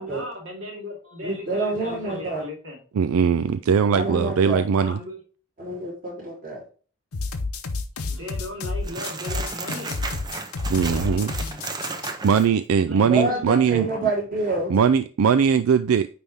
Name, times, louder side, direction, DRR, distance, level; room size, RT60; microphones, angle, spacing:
voice 1, 0.0-2.8 4.8-5.2 8.1-10.0 12.8-14.0, left 1 dB, 60° right, 2.4 m, -36 dB
voice 2, 1.2-2.4 3.9-4.6 5.6-6.6 10.8-11.2 13.1-14.7, right 2 dB, 40° right, 3.5 m, -27 dB
voice 3, 3.0-5.0 10.7-11.3 12.2-14.1 14.7-16.1, right 6 dB, 75° right, 0.4 m, -20 dB
sound 1, 7.1-12.1, left 3 dB, 85° left, 0.9 m, -30 dB
sound 2, 8.8-12.5, right 3 dB, 20° right, 0.6 m, -34 dB
9.3 x 3.5 x 3.6 m
head